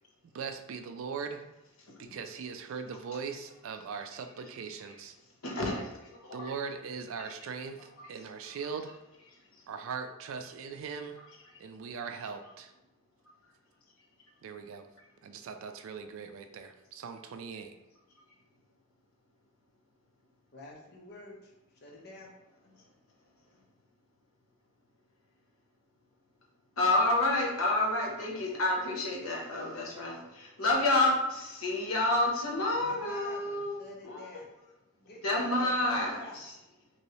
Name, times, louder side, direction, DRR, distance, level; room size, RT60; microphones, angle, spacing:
voice 1, 0.3-1.4 2.0-5.2 6.3-9.0 9.7-11.2 11.6-12.7 14.4-14.9 15.2-17.7, right 5 dB, 70° right, 7 dB, 0.3 m, -40 dB
voice 2, 1.9-2.2 5.4-6.5 9.5-9.6 26.8-34.2 35.2-36.5, left 2 dB, 85° left, -1 dB, 0.8 m, -29 dB
voice 3, 20.5-22.3 32.7-34.5 35.0-35.7 35.9-36.4, left 2 dB, 50° left, -2 dB, 0.8 m, -49 dB
3.0 x 2.8 x 3.0 m, 0.95 s
head